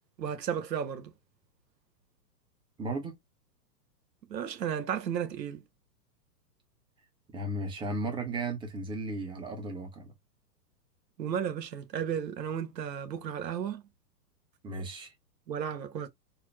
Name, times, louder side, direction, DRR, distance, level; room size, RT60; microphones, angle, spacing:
voice 1, 0.2-1.1 4.3-5.6 11.2-13.8 15.5-16.1, right 8 dB, 85° right, 1.3 m, -33 dB
voice 2, 2.8-3.1 7.3-10.1 14.6-15.1, right 2 dB, 10° right, 0.8 m, -35 dB
4.3 x 2.1 x 3.3 m
hypercardioid pair, 145°, 49 cm